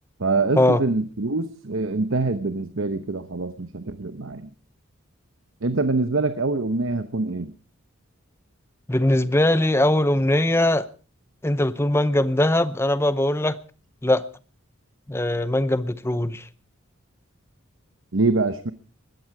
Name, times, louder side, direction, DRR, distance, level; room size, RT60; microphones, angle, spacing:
voice 1, 0.2-4.5 5.6-7.5 18.1-18.7, right 3 dB, 65° right, 0.9 m, -24 dB
voice 2, 8.9-10.9 11.4-13.6 14.0-14.2 15.1-16.4, left 1 dB, 10° left, 0.7 m, -21 dB
20.0 x 14.0 x 4.8 m
head